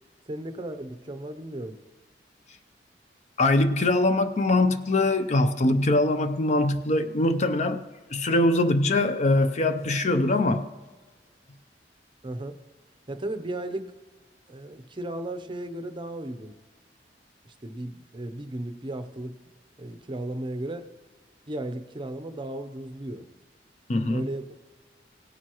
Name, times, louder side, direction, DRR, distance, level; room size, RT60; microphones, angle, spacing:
voice 1, 0.3-1.8 12.2-12.6 13.1-13.9 14.5-16.6 17.4-19.3 19.8-20.9 21.5-23.3 24.1-24.5, right 1 dB, 30° right, 9 dB, 0.6 m, -35 dB
voice 2, 3.4-7.8 8.1-10.7 23.9-24.3, left 2 dB, 40° left, 9 dB, 0.5 m, -22 dB
17.0 x 9.3 x 3.0 m, 1.3 s
head